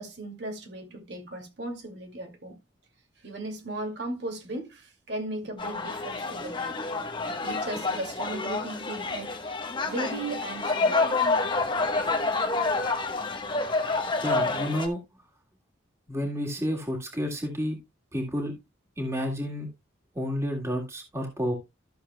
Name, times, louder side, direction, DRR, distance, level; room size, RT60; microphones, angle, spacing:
voice 1, 0.0-2.6 3.2-6.8 7.3-9.3 9.8-11.1 11.8-11.9, right 2 dB, 65° right, 2.4 m, -37 dB
sound 1, 5.6-14.9, left 3 dB, 25° left, 1.1 m, -28 dB
voice 2, 14.2-15.0 16.1-17.8 18.1-18.5 19.0-19.7 20.1-21.5, equal, 15° right, 2.0 m, -30 dB
13.5 x 7.0 x 2.3 m
head